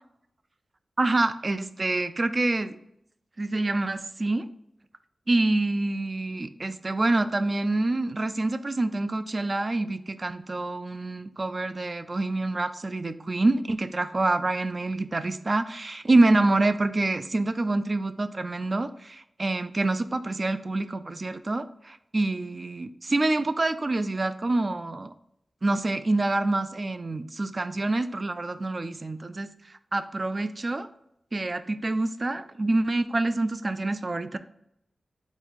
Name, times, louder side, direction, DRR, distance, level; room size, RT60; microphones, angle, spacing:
voice 1, 1.0-2.8 3.4-4.5 5.3-25.1 25.6-30.9 31.3-34.4, right 2 dB, 45° right, 11 dB, 0.3 m, -26 dB
3.8 x 2.3 x 4.0 m, 0.78 s
cardioid pair, 40°, 0 cm